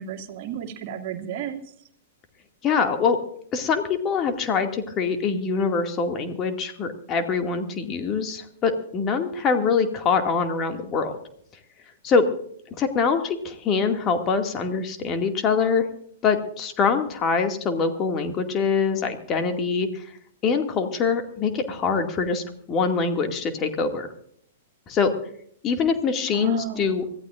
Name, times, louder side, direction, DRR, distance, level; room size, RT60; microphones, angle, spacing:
voice 1, 0.0-1.6 26.3-27.1, right 9 dB, 45° right, 1 dB, 2.3 m, -33 dB
voice 2, 2.6-3.2 3.5-11.2 12.0-12.3 12.8-15.9 16.2-20.0 20.4-22.4 22.7-24.1 24.9-25.1 25.6-27.0, left 5 dB, 30° left, 5 dB, 2.3 m, -24 dB
25.5 x 15.0 x 2.6 m, 0.64 s
figure-of-eight pair, 105°, 0 cm